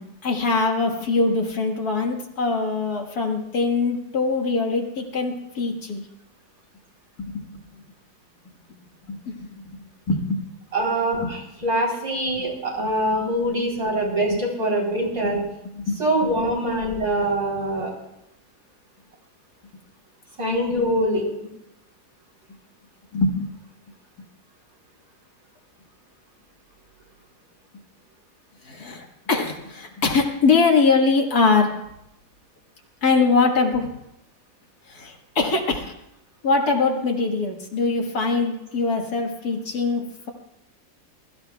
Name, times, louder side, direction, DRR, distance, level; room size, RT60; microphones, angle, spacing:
voice 1, 0.0-6.0 7.2-7.6 9.1-9.6 10.1-10.4 11.2-11.3 12.8-12.9 15.3-15.4 15.7-16.0 17.1-17.2 23.1-23.5 28.6-31.7 33.0-33.9 34.9-35.9 36.4-40.3, left 4 dB, 70° left, 1 dB, 2.2 m, -22 dB
voice 2, 10.7-15.4 16.0-17.9 20.4-21.2, right 1 dB, 70° right, -4 dB, 4.3 m, -24 dB
22.0 x 14.0 x 2.3 m, 0.84 s
omnidirectional pair, 1.7 m